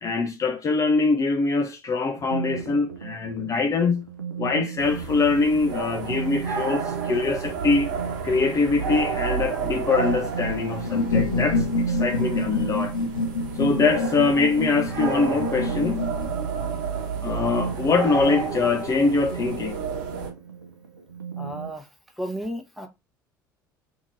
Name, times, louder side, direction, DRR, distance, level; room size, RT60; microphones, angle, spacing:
voice 1, 0.0-4.1 4.4-7.9 8.2-13.0 13.6-16.1 17.2-19.8, left 4 dB, 30° left, 0.5 m, -23 dB
sound 1, 2.2-21.7, right 7 dB, 90° right, 0.5 m, -35 dB
sound 2, 4.8-20.3, right 5 dB, 70° right, 1.0 m, -31 dB
sound 3, 10.8-16.3, left 3 dB, 80° left, 0.6 m, -27 dB
voice 2, 21.4-21.8 22.2-22.9, equal, ahead, 1.0 m, -33 dB
2.9 x 2.7 x 3.7 m
figure-of-eight pair, 60°, 11 cm